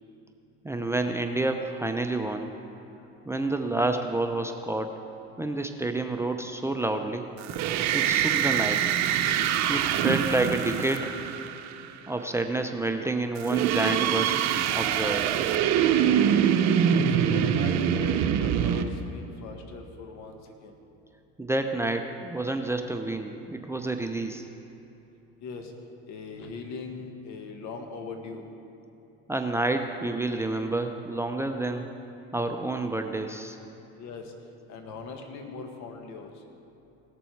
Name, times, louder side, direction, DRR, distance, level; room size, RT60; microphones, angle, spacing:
voice 1, 0.6-2.5 3.3-4.9 5.4-7.2 7.9-8.9 9.7-11.2 12.1-14.4 14.7-15.3 21.4-24.5 29.3-31.9 32.3-33.6, right 2 dB, 10° right, 5 dB, 0.6 m, -29 dB
sound 1, 7.4-11.9 13.4-18.8, right 9 dB, 60° right, 0.8 m, -24 dB
voice 2, 16.9-20.8 25.4-25.7 26.1-28.5 33.9-34.3 34.7-36.4, left 4 dB, 60° left, 4 dB, 1.6 m, -40 dB
18.0 x 6.9 x 4.7 m, 2.9 s
hypercardioid pair, 85°, 31 cm